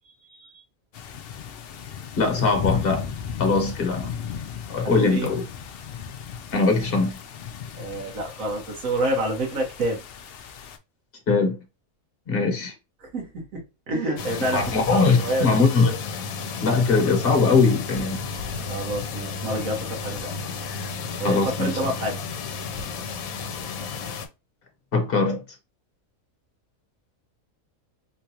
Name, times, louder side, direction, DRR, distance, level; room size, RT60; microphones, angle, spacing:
sound 1, 0.9-10.8, left 7 dB, 65° left, 0.6 m, -35 dB
voice 1, 2.2-3.1 3.4-4.1 4.7-5.4 6.5-7.2 11.3-11.6 12.3-12.7 14.5-16.0 16.6-18.2 21.2-21.7 24.9-25.4, left 4 dB, 45° left, 1.1 m, -21 dB
voice 2, 5.0-5.3 7.7-10.0 13.0-15.5 18.7-20.3 21.2-22.2 22.7-22.9, right 1 dB, 70° right, 1.7 m, -28 dB
sound 2, 14.2-24.3, left 5 dB, 85° left, 1.1 m, -33 dB
3.7 x 2.4 x 2.8 m
omnidirectional pair, 1.5 m